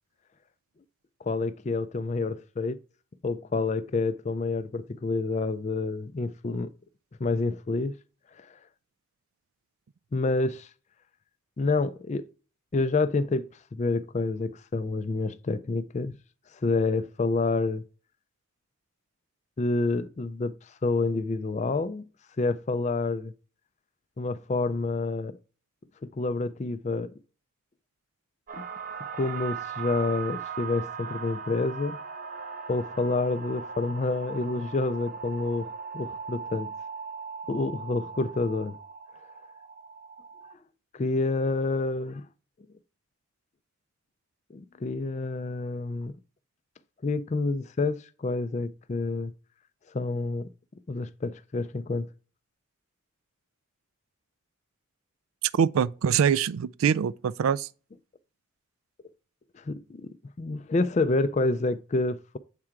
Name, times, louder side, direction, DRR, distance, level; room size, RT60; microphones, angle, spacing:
voice 1, 1.2-2.8 3.2-6.7 7.2-7.9 8.4-8.5 10.1-10.7 11.6-12.3 12.7-16.2 16.6-17.8 19.6-22.0 22.4-23.3 24.2-25.4 26.2-27.1 28.5-28.6 29.2-32.0 32.7-36.7 37.5-38.8 40.9-42.3 44.5-46.1 47.0-49.3 49.9-50.5 50.9-52.1 59.5-60.1 60.4-62.4, left 3 dB, 35° left, 0.3 m, -28 dB
sound 1, 28.5-40.5, right 6 dB, 40° right, 0.7 m, -39 dB
voice 2, 55.5-57.7, right 7 dB, 85° right, 0.3 m, -24 dB
7.5 x 3.7 x 4.5 m
head